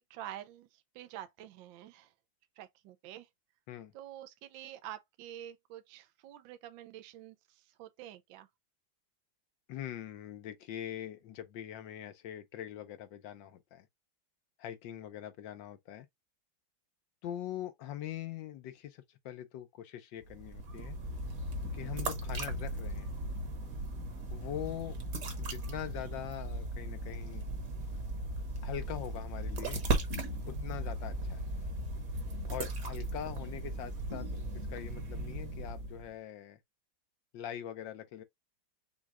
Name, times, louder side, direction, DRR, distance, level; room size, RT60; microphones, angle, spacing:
voice 1, 0.0-2.1 2.6-3.3 3.9-8.5, right 12 dB, 75° right, 1.3 m, -48 dB
voice 2, 9.7-13.9 14.6-16.1 17.2-21.0 21.7-23.1 24.3-25.0 25.4-27.5 28.6-29.8 30.5-31.4 32.5-34.3 34.7-36.6 37.3-38.2, left 11 dB, 70° left, 1.3 m, -42 dB
sound 1, 20.2-36.1, right 1 dB, 50° right, 1.4 m, -37 dB
sound 2, 30.1-31.0 34.1-35.0, left 2 dB, 40° left, 1.1 m, -47 dB
6.3 x 2.3 x 3.4 m
omnidirectional pair, 2.2 m